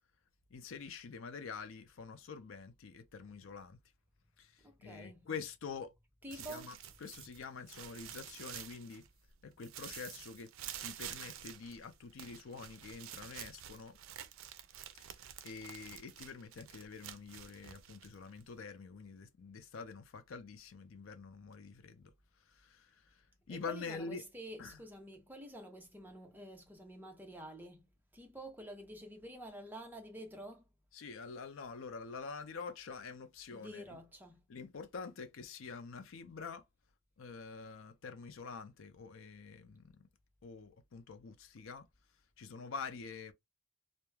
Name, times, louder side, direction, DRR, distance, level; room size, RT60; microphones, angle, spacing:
voice 1, 0.5-3.8 4.4-5.9 6.3-6.8 7.0-9.1 9.4-10.5 10.8-14.0 14.9-22.1 22.5-23.2 23.5-24.2 24.6-24.8 30.9-34.0 34.5-36.6 37.2-40.1 40.4-41.9 42.4-43.3, left 5 dB, 80° left, 0.5 m, -46 dB
voice 2, 4.6-5.2 6.2-6.7 23.5-27.9 28.1-30.7 33.5-34.4, right 1 dB, 10° right, 0.6 m, -49 dB
sound 1, 6.3-9.3 9.6-18.6, right 10 dB, 90° right, 0.4 m, -49 dB
2.3 x 2.1 x 3.1 m
head